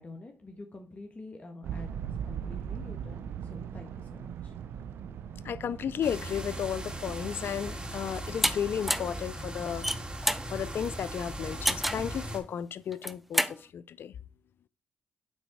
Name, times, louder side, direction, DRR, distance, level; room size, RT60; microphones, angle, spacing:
voice 1, 0.0-4.9, left 2 dB, 35° left, 1.4 m, -47 dB
sound 1, 1.6-10.7, right 8 dB, 80° right, 0.6 m, -41 dB
voice 2, 5.4-9.9 10.5-14.1, left 8 dB, 70° left, 0.4 m, -34 dB
sound 2, 6.0-12.4, right 1 dB, 20° right, 2.6 m, -39 dB
Power button on old computer, 8.4-8.5 8.9-9.2 9.7-10.5 11.7-12.1 12.9-13.6, equal, 5° right, 0.7 m, -28 dB
9.3 x 3.9 x 4.6 m
supercardioid pair, 55°, 4 cm